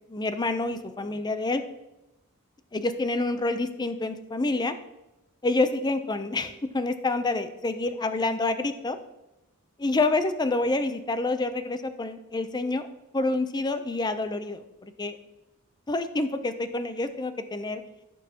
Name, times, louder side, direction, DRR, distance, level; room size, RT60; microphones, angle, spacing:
voice 1, 0.1-1.6 2.7-4.7 5.4-9.0 9.8-12.9 13.1-15.2 15.9-17.8, left 2 dB, 20° left, 10 dB, 0.5 m, -27 dB
14.5 x 6.2 x 2.9 m, 0.93 s
head